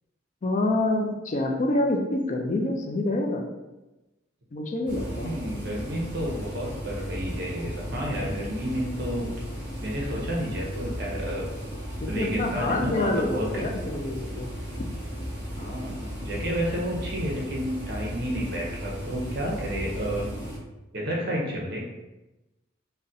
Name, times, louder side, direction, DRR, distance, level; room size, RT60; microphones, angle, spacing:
voice 1, 0.4-3.5 4.5-5.3 12.1-14.5, left 2 dB, 40° left, 2 dB, 0.4 m, -27 dB
sound 1, 4.9-20.6, equal, 25° right, 1.1 m, -35 dB
voice 2, 5.1-9.3 9.8-11.7 12.1-13.7 15.6-20.3 20.9-21.8, equal, 55° right, -2 dB, 0.7 m, -31 dB
3.8 x 2.1 x 2.7 m, 1.0 s
head